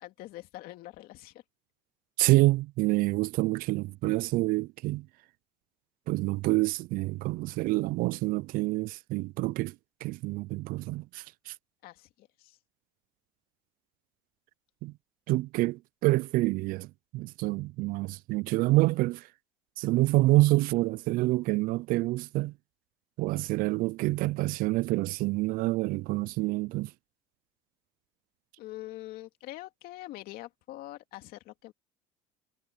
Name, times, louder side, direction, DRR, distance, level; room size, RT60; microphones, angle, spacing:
voice 1, 0.0-1.4 11.8-12.6 28.6-31.7, left 16 dB, 60° left, 2.5 m, -44 dB
voice 2, 2.2-5.1 6.1-9.7 10.0-11.5 14.8-14.9 15.3-16.9 17.1-19.3 19.8-22.5 23.2-26.9, right 20 dB, 55° right, 0.4 m, -27 dB
supercardioid pair, 120°, 17 cm